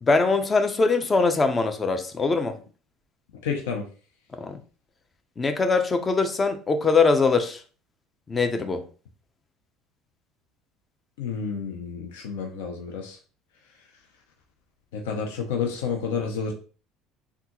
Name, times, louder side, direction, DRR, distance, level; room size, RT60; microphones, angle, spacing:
voice 1, 0.0-2.6 4.3-4.6 5.4-7.6 8.3-8.8, left 4 dB, 25° left, 0.6 m, -22 dB
voice 2, 3.4-3.8 11.2-13.2 14.9-16.5, left 6 dB, 80° left, 0.6 m, -30 dB
3.5 x 2.4 x 2.9 m
hypercardioid pair, 75°, 0 cm